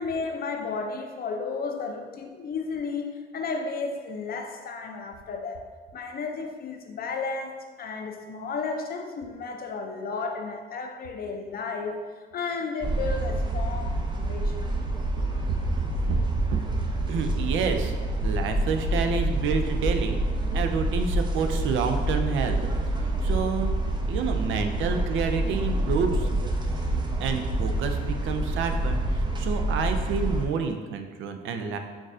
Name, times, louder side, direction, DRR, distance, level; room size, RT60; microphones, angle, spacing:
voice 1, 0.0-5.6 5.9-12.0 12.3-14.6, left 4 dB, 50° left, 4 dB, 0.5 m, -33 dB
sound 1, 12.8-30.5, right 1 dB, 25° right, 0.5 m, -27 dB
voice 2, 15.2-15.6 16.1-16.6 17.1-17.9 18.2-20.2 20.5-22.6 23.2-23.7 24.1-26.4 27.2-31.8, right 5 dB, 75° right, 6 dB, 0.4 m, -29 dB
6.0 x 2.4 x 2.6 m, 1.5 s
cardioid pair, 90°, 20 cm